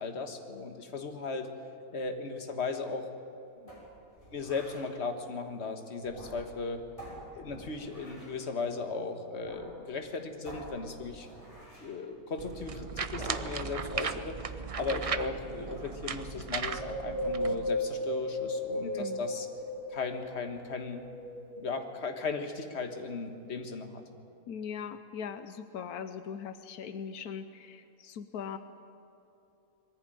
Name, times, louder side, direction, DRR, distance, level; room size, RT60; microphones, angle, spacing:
voice 1, 0.0-1.5 1.9-3.1 3.6-3.7 4.3-6.8 7.3-11.3 11.8-19.5 19.9-21.0 21.6-24.0, left 4 dB, 45° left, 6 dB, 1.7 m, -37 dB
sound 1, 3.7-4.9 6.0-6.6 7.0-8.4 9.4-9.7 10.0-10.1 10.4-11.9 13.1-13.6 14.0-15.1 15.5-15.9, equal, 20° left, 6.2 m, -47 dB
sound 2, 12.4-17.7, right 5 dB, 60° right, 0.3 m, -37 dB
Wind, 16.6-20.2 20.7-22.0 22.5-22.6, left 1 dB, 85° right, 2.2 m, -35 dB
voice 2, 18.8-19.2 24.5-28.6, left 7 dB, 85° left, 10 dB, 1.3 m, -40 dB
21.0 x 15.0 x 9.2 m, 2.7 s
omnidirectional pair, 1.6 m